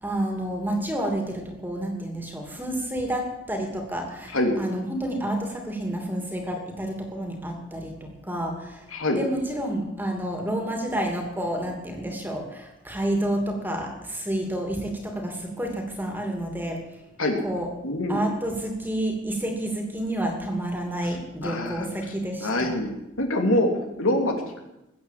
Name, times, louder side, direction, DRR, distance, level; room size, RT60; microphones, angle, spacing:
voice 1, 0.0-8.8 9.2-16.8 17.4-17.7 18.1-22.7, right 1 dB, 10° right, 2 dB, 2.7 m, -29 dB
voice 2, 17.8-18.2 21.0-21.2 21.4-21.9 22.4-22.9 23.2-23.7 24.0-24.6, left 1 dB, 80° left, 3 dB, 3.0 m, -24 dB
21.5 x 8.9 x 7.6 m, 0.93 s
head